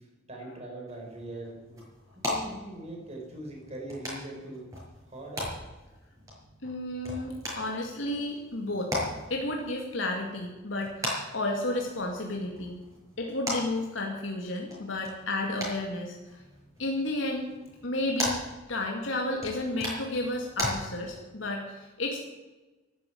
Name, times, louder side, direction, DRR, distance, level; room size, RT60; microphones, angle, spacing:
voice 1, 0.3-1.8 2.1-4.7 5.1-5.5, right 1 dB, 35° right, 0 dB, 5.1 m, -41 dB
sound 1, 0.9-20.7, left 1 dB, 20° right, 6.4 m, -39 dB
voice 2, 6.6-8.9 9.3-12.8 13.2-16.4 16.8-17.5 17.8-18.4 18.7-22.2, left 2 dB, 85° left, 0 dB, 2.3 m, -32 dB
12.5 x 11.5 x 8.7 m, 1.2 s
head